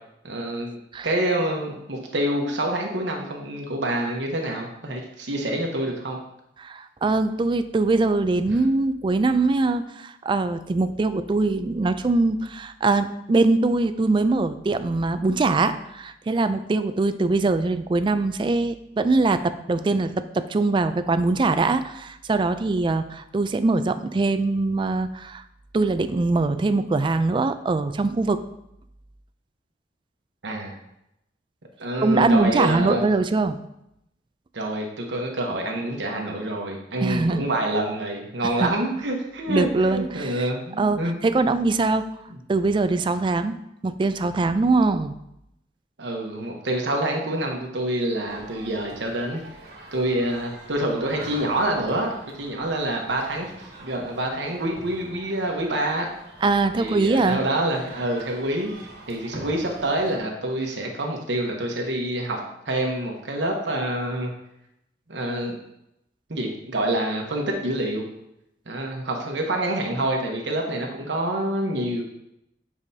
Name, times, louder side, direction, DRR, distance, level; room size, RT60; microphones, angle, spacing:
voice 1, 0.2-0.8 1.0-6.2 30.4-30.7 31.8-33.1 34.5-41.2 46.0-49.4 49.9-52.1 52.4-56.1 56.7-58.7 59.1-64.3 65.1-65.5 66.3-68.1 68.7-72.0, right 1 dB, 85° right, 1 dB, 1.1 m, -27 dB
voice 2, 6.6-25.4 25.7-28.4 32.0-33.6 37.0-37.5 38.6-38.7 39.5-40.5 40.8-42.1 42.5-43.5 43.8-45.1 56.4-57.4, right 3 dB, 30° right, 10 dB, 0.3 m, -22 dB
sound 1, 48.3-60.2, right 2 dB, 65° right, 1.3 m, -44 dB
7.4 x 4.8 x 2.8 m, 0.82 s
head